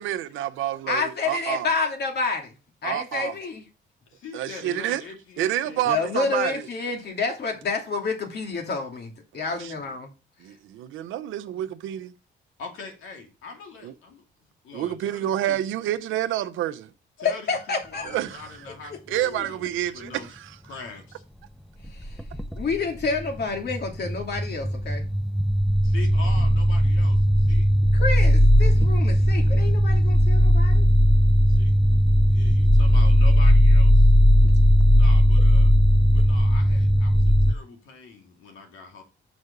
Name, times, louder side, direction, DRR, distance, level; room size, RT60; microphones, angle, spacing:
voice 1, 0.0-1.7 2.8-3.4 4.3-5.0 5.4-6.6 9.3-9.7 10.4-12.1 13.8-13.9 14.7-16.9 18.1-18.4 19.1-20.1 20.4-20.5, right 12 dB, 90° right, 0.8 m, -28 dB
voice 2, 0.9-2.5 2.8-3.7 5.9-10.1 17.2-18.2 19.1-19.5 21.9-22.2 22.6-25.1 27.9-30.9, left 4 dB, 55° left, 2.7 m, -29 dB
voice 3, 4.1-6.0 6.4-6.5 12.6-14.2 14.6-15.6 17.2-19.6 19.9-20.4 20.7-21.2 25.8-27.7 31.5-31.8 32.3-34.1 34.9-35.7 36.1-39.0, left 4 dB, 80° left, 2.5 m, -42 dB
sound 1, 21.9-23.4 23.7-37.5, equal, ahead, 0.5 m, -18 dB
6.3 x 4.8 x 6.7 m
cardioid pair, 90°, 20 cm